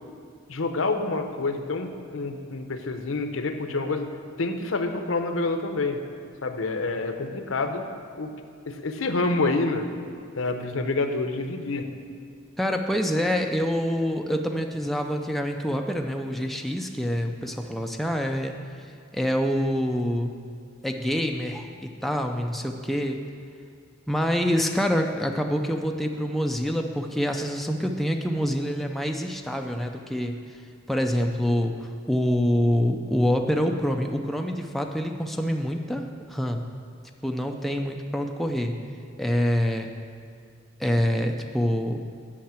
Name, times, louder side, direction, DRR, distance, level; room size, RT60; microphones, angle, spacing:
voice 1, 0.5-4.1 4.4-6.0 6.4-7.9 8.2-8.3 8.7-9.9 10.3-11.9, left 3 dB, 75° left, 6 dB, 0.7 m, -27 dB
voice 2, 12.6-18.5 19.1-20.3 20.8-23.2 24.1-30.4 30.9-36.7 37.2-38.8 39.2-39.9 40.8-42.0, equal, ahead, 3 dB, 0.4 m, -26 dB
8.6 x 5.6 x 7.4 m, 2.3 s
head